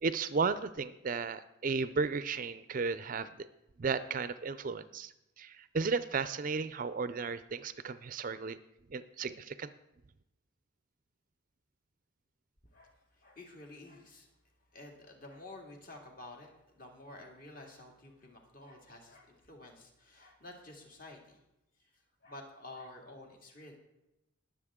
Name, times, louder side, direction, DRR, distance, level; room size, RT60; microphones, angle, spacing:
voice 1, 0.0-3.5 3.8-5.1 5.4-8.6 8.9-9.7, right 4 dB, 40° right, 14 dB, 0.4 m, -34 dB
voice 2, 12.7-14.3 14.7-21.4 21.8-23.8, left 2 dB, 40° left, 1 dB, 2.2 m, -51 dB
20.5 x 7.4 x 3.7 m, 0.89 s
head